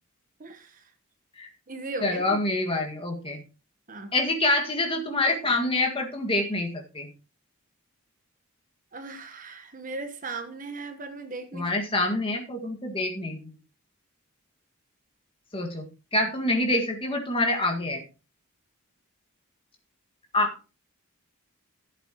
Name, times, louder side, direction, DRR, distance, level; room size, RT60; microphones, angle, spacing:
voice 1, 0.4-0.8 1.7-2.4 3.9-4.1 8.9-11.7, right 3 dB, 35° right, 7 dB, 1.1 m, -37 dB
voice 2, 2.0-3.4 4.1-7.1 11.5-13.6 15.5-15.9 16.1-18.0 20.3-20.7, left 2 dB, 25° left, 3 dB, 1.8 m, -26 dB
15.0 x 8.4 x 2.9 m, 0.32 s
head